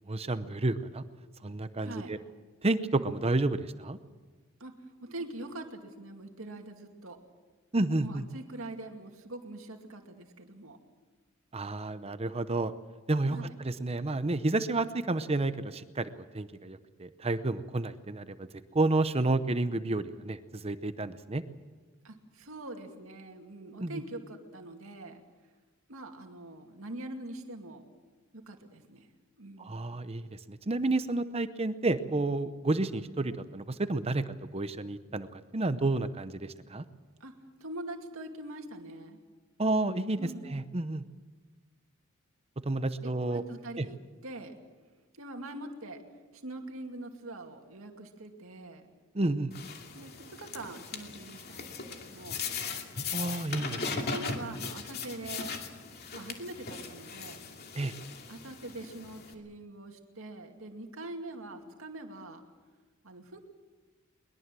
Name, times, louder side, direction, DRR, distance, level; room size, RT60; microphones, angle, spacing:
voice 1, 0.1-1.0 1.4-2.2 2.6-4.0 7.7-8.2 11.5-12.7 13.1-18.5 18.7-21.4 23.8-24.0 29.6-36.8 39.6-41.0 42.6-43.4 43.8-43.9 49.1-49.5 53.1-54.0 57.7-57.9, right 2 dB, 30° right, 12 dB, 0.8 m, -30 dB
voice 2, 1.8-2.2 4.6-4.7 5.0-7.2 8.0-10.8 13.3-13.6 22.0-25.2 25.9-27.8 28.3-29.1 29.4-29.8 37.2-37.3 37.6-39.2 40.2-40.5 43.0-44.6 45.1-46.0 46.3-48.8 49.9-52.4 53.7-55.5 56.1-57.5 58.3-62.4 63.0-63.4, right 2 dB, 75° right, 3 dB, 2.3 m, -43 dB
sound 1, 49.5-59.3, left 5 dB, 50° left, 2.6 m, -39 dB
22.5 x 21.5 x 7.6 m, 1.3 s
head